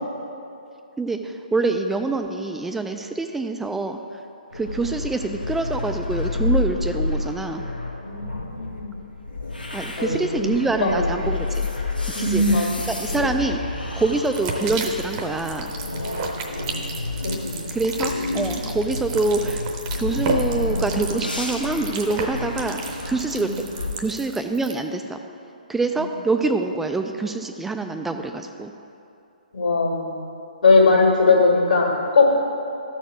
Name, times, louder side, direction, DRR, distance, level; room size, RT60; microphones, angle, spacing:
voice 1, 1.0-4.0 4.5-7.7 9.7-11.7 12.2-13.6 13.9-15.7 17.7-22.8 23.1-23.5 24.0-25.2 25.7-28.7, right 3 dB, 5° right, 5 dB, 0.3 m, -25 dB
sound 1, 4.5-23.9, left 2 dB, 85° left, 1.2 m, -29 dB
voice 2, 8.0-8.9 10.0-11.3 12.1-12.9 16.5-16.8 17.2-17.6 23.4-23.6 27.9-28.1 29.5-30.2 30.6-32.3, left 3 dB, 60° left, -2 dB, 2.0 m, -20 dB
sound 2, 14.2-24.7, right 3 dB, 30° right, 0.8 m, -32 dB
13.0 x 4.5 x 4.8 m, 2.7 s
figure-of-eight pair, 130°, 5 cm